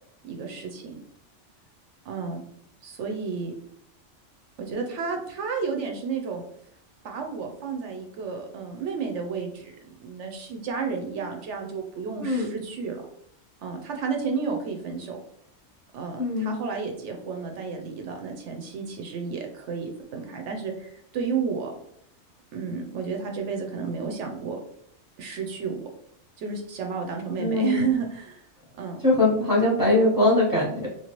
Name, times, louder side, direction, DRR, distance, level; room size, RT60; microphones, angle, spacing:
voice 1, 0.2-0.9 2.0-2.4 2.8-3.5 4.6-6.4 7.0-13.0 13.6-15.2 15.9-21.7 22.5-24.6 25.2-25.8 26.4-28.4 28.8-29.0, right 5 dB, 70° right, 3 dB, 0.8 m, -31 dB
voice 2, 12.2-12.5 16.2-16.6 27.4-27.9 29.0-30.9, left 2 dB, 20° left, -4 dB, 0.7 m, -22 dB
3.0 x 2.3 x 2.9 m, 0.70 s
omnidirectional pair, 1.3 m